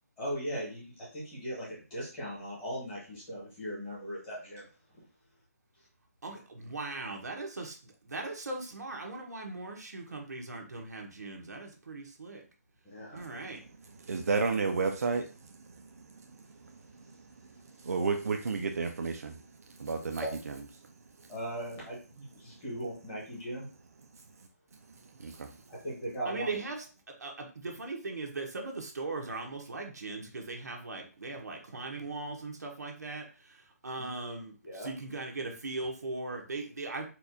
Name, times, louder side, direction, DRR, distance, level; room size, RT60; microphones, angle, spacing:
voice 1, 0.2-4.7 12.8-13.2 20.1-20.3 21.3-23.7 25.7-26.5 34.0-34.1 34.6-34.9, equal, 10° left, 1.0 m, -38 dB
voice 2, 6.2-12.4 13.1-13.6 26.3-26.8 27.2-37.1, right 3 dB, 85° right, 0.9 m, -39 dB
voice 3, 13.2-17.2 17.8-19.4 19.8-20.2 25.2-25.6, right 4 dB, 65° right, 0.4 m, -33 dB
4.2 x 2.3 x 2.5 m
hypercardioid pair, 175°, 9 cm